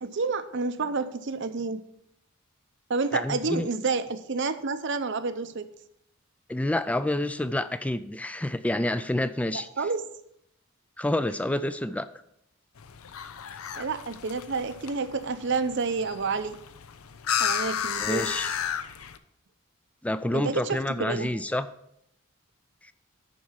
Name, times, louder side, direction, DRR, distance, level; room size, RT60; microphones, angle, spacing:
voice 1, 0.0-1.8 2.9-5.7 9.5-10.0 13.7-16.6 17.4-18.3 20.3-21.3, right 4 dB, 55° right, 11 dB, 0.7 m, -29 dB
voice 2, 3.1-3.7 6.5-9.7 11.0-12.1 18.0-18.5 20.0-21.7, left 1 dB, 5° left, 13 dB, 0.3 m, -28 dB
sound 1, 12.8-19.2, left 8 dB, 80° left, 0.6 m, -33 dB
11.0 x 4.7 x 5.7 m, 0.75 s
head